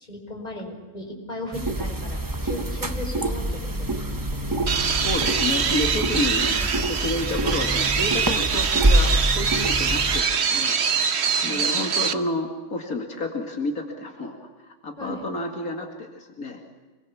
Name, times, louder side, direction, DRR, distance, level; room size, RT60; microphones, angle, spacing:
voice 1, 0.1-4.0 4.3-4.6 9.8-9.9 11.4-11.9 15.0-15.2, left 1 dB, 30° left, 1 dB, 5.6 m, -37 dB
sound 1, 1.5-10.2, right 1 dB, 15° right, 0.8 m, -26 dB
sound 2, 4.7-12.1, right 6 dB, 50° right, 1.2 m, -24 dB
voice 2, 4.9-10.8 11.4-14.4 14.6-16.6, left 2 dB, 80° left, 2 dB, 2.8 m, -30 dB
26.5 x 22.0 x 7.2 m, 1.3 s
omnidirectional pair, 1.5 m